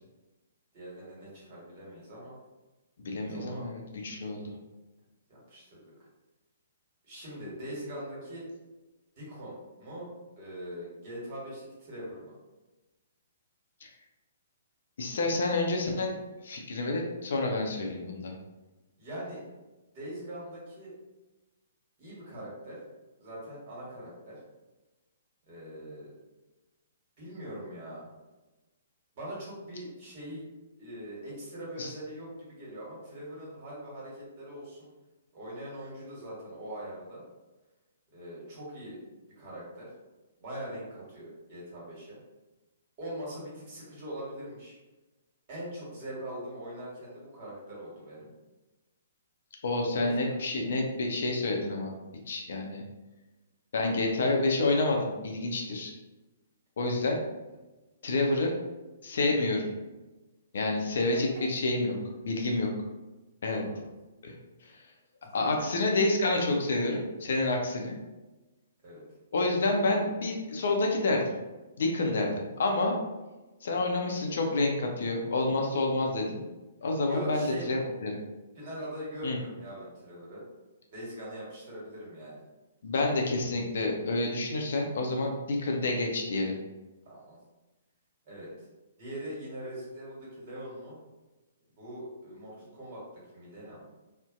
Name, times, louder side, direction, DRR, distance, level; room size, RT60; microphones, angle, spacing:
voice 1, 0.7-2.4 3.3-3.7 4.2-4.3 5.3-5.8 7.0-8.5 9.2-10.1 10.3-12.3 19.0-19.4 19.9-20.9 22.0-22.8 23.2-24.3 25.5-26.1 27.2-28.0 29.1-30.5 30.8-34.9 35.3-37.2 38.1-39.0 39.4-39.9 40.4-42.2 43.0-44.8 45.5-48.3 49.9-50.4 63.5-63.9 68.8-69.0 77.1-77.8 78.5-80.4 80.9-82.4 87.0-87.4 88.2-88.5 89.0-91.0 91.8-93.0 93.3-93.8, right 1 dB, 40° right, -6 dB, 1.3 m, -42 dB
voice 2, 3.0-4.4 15.0-16.1 16.4-18.3 31.8-31.9 49.6-51.9 52.3-52.8 53.7-55.9 56.8-57.2 58.0-58.5 59.0-59.7 60.5-62.0 62.2-62.7 63.4-63.6 64.2-64.3 64.6-64.8 65.3-68.0 69.3-71.3 71.8-73.0 73.6-76.4 76.8-78.2 79.2-79.4 82.8-86.5, left 2 dB, 60° left, 1 dB, 0.4 m, -28 dB
2.6 x 2.1 x 2.4 m, 1.1 s
figure-of-eight pair, 120°, 0 cm